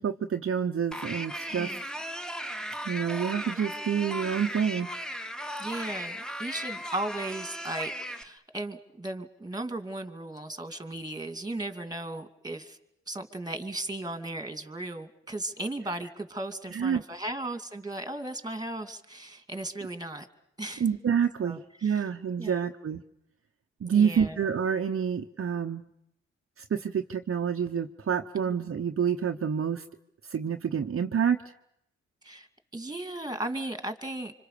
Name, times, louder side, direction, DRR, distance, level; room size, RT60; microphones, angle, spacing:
voice 1, 0.0-1.8 2.9-4.9 16.7-17.0 20.8-23.0 23.8-25.8 26.6-29.9 30.2-31.4, right 7 dB, 50° right, 5 dB, 0.9 m, -28 dB
sound 1, 0.9-8.2, equal, ahead, 1.4 m, -36 dB
voice 2, 1.5-1.8 5.6-12.8 13.1-20.3 20.6-20.8 21.4-22.0 22.4-22.7 23.9-24.4 32.2-32.5 32.7-34.3, right 1 dB, 15° right, 8 dB, 2.5 m, -36 dB
26.0 x 25.5 x 6.8 m, 0.79 s
supercardioid pair, 50°, 29 cm